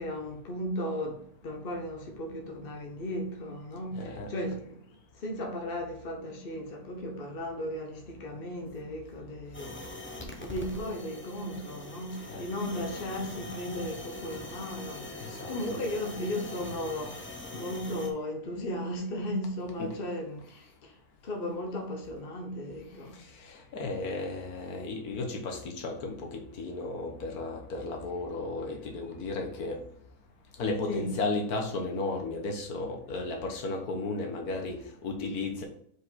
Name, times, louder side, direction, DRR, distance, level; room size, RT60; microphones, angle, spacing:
voice 1, 0.0-4.8 5.1-17.2 17.5-20.9 21.2-23.2 30.9-31.1, left 1 dB, 40° left, 1.3 m, -36 dB
voice 2, 3.9-4.3 12.3-12.5 15.2-15.8 19.8-20.0 23.4-29.8 30.6-35.6, left 3 dB, 90° left, 1.6 m, -34 dB
sound 1, 9.5-18.1, left 2 dB, 10° left, 0.7 m, -42 dB
5.1 x 4.9 x 4.0 m
omnidirectional pair, 1.5 m